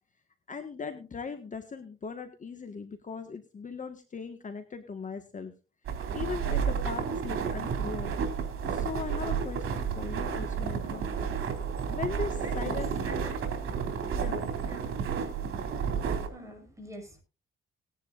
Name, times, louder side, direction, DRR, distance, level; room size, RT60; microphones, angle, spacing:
voice 1, 0.5-5.5 6.1-8.2 8.6-11.3 11.9-13.3 14.1-14.4, left 5 dB, 35° left, 6 dB, 1.6 m, -39 dB
sound 1, 5.8-16.3, right 6 dB, 85° right, 3.0 m, -31 dB
voice 2, 12.4-12.8 13.0-13.9 14.6-14.9 16.3-17.2, equal, 15° right, 3 dB, 6.1 m, -45 dB
19.5 x 10.5 x 2.5 m, 0.31 s
cardioid pair, 110°, 21 cm